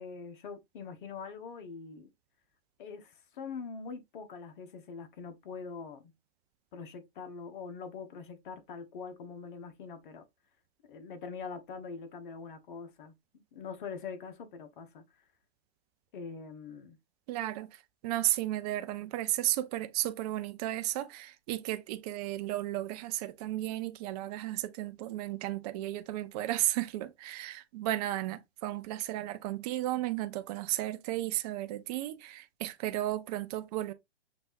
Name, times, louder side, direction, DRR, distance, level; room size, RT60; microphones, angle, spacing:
voice 1, 0.0-2.1 2.8-6.1 6.7-10.2 10.9-13.1 13.5-15.0 16.1-17.0, left 5 dB, 55° left, 1.3 m, -43 dB
voice 2, 17.3-33.9, right 15 dB, 40° right, 0.6 m, -34 dB
5.9 x 3.3 x 2.5 m
hypercardioid pair, 120°, 31 cm